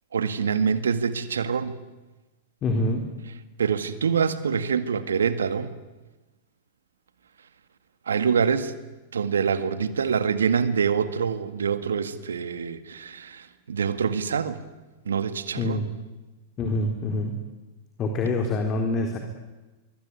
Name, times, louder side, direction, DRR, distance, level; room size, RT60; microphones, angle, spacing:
voice 1, 0.1-1.8 3.6-5.7 8.1-8.7 9.1-14.6 15.1-15.9, right 6 dB, 80° right, 1.9 m, -25 dB
voice 2, 2.6-3.0 15.6-15.9 16.6-17.3 18.0-19.2, left 2 dB, 30° left, 4.1 m, -25 dB
24.0 x 24.0 x 9.9 m
hypercardioid pair, 105°, 0 cm